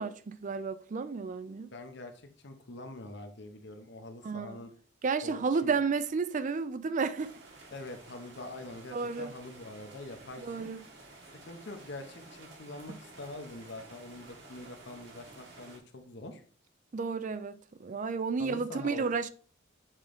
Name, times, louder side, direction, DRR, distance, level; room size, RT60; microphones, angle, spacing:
voice 1, 0.0-1.7 4.2-4.6 5.0-7.3 8.9-9.3 10.4-10.8 12.9-13.0 16.9-19.3, right 5 dB, 40° right, 0.4 m, -32 dB
voice 2, 1.7-4.7 5.2-5.8 7.7-10.7 11.3-16.4 18.4-19.2, left 2 dB, 55° left, 0.9 m, -44 dB
sound 1, 7.2-15.8, right 2 dB, 55° right, 1.5 m, -52 dB
7.3 x 3.8 x 3.4 m
head